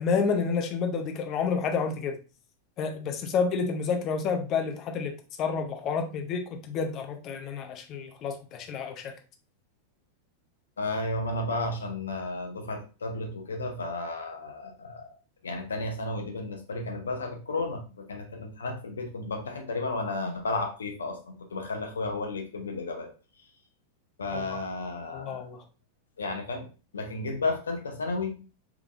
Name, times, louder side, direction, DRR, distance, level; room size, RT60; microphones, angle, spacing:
voice 1, 0.0-2.2 2.8-5.1 5.4-9.1 24.3-24.4 25.1-25.6, left 5 dB, 35° left, 5 dB, 0.6 m, -29 dB
voice 2, 10.8-15.1 15.4-23.1 24.2-25.5 26.2-26.7 26.9-28.4, left 2 dB, 70° left, 4 dB, 0.7 m, -33 dB
3.5 x 3.4 x 2.4 m, 0.34 s
figure-of-eight pair, 90°, 0 cm